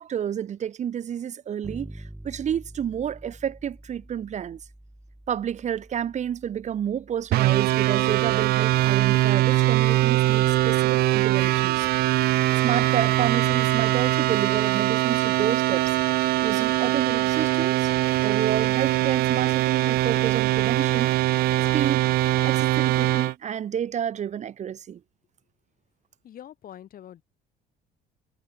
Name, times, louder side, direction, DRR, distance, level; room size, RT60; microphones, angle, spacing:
voice 1, 0.0-4.6 5.3-11.9 12.2-16.0 16.4-17.9 18.2-21.2 21.7-25.0, right 9 dB, 45° right, 0.9 m, -30 dB
Bass guitar, 1.6-11.3, right 1 dB, 5° right, 1.5 m, -48 dB
sound 1, 7.3-23.3, right 17 dB, 70° right, 0.4 m, -22 dB
voice 2, 26.2-27.2, left 11 dB, 60° left, 7.0 m, -44 dB
cardioid pair, 110°, 17 cm